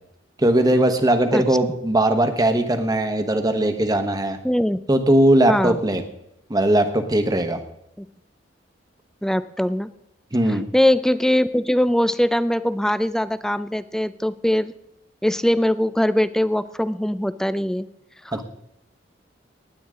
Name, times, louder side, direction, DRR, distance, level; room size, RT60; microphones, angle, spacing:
voice 1, 0.4-4.4 4.9-6.0 6.5-7.6 10.3-10.6 18.3-18.4, right 1 dB, 20° right, 7 dB, 1.2 m, -19 dB
voice 2, 4.4-4.8 5.5-5.8 8.0-8.1 9.2-9.9 10.5-14.7 15.2-17.9 18.3-18.4, left 1 dB, 5° left, 14 dB, 0.4 m, -21 dB
19.0 x 8.9 x 3.7 m, 0.82 s
head